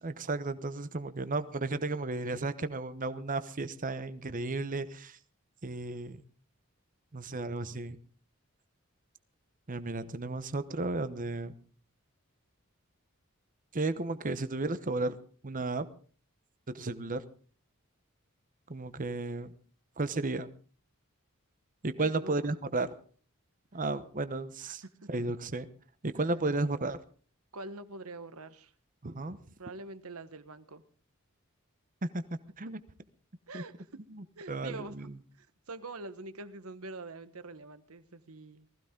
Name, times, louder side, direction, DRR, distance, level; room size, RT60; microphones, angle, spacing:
voice 1, 0.0-5.2 5.6-6.2 7.1-8.0 9.7-11.5 13.7-15.2 15.4-15.9 16.7-17.2 18.7-19.5 20.0-20.5 21.8-22.9 23.7-24.8 25.1-25.7 26.0-27.0 29.0-29.4 32.0-32.2 32.6-32.8 33.5-33.6 34.1-35.1, right 2 dB, 40° right, 0.9 m, -33 dB
voice 2, 22.0-22.3 24.6-25.1 26.1-26.2 27.5-28.7 29.6-30.8 33.5-33.9 34.3-35.1 35.3-38.7, right 2 dB, 85° right, 1.3 m, -45 dB
19.5 x 15.0 x 3.8 m
head